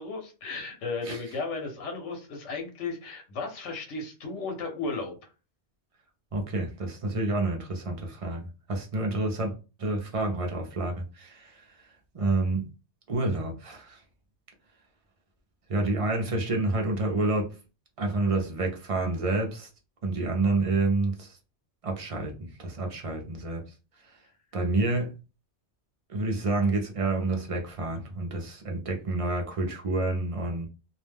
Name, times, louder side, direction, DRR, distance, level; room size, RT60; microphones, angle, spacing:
voice 1, 0.0-5.2, left 3 dB, 80° left, 1.1 m, -35 dB
voice 2, 6.3-9.5 9.8-11.9 12.1-12.7 13.1-14.0 15.7-17.6 18.0-19.7 20.0-21.4 21.8-23.6 24.0-24.2 24.5-25.2 26.1-30.7, right 2 dB, 40° right, 0.5 m, -29 dB
2.4 x 2.1 x 3.3 m
omnidirectional pair, 1.2 m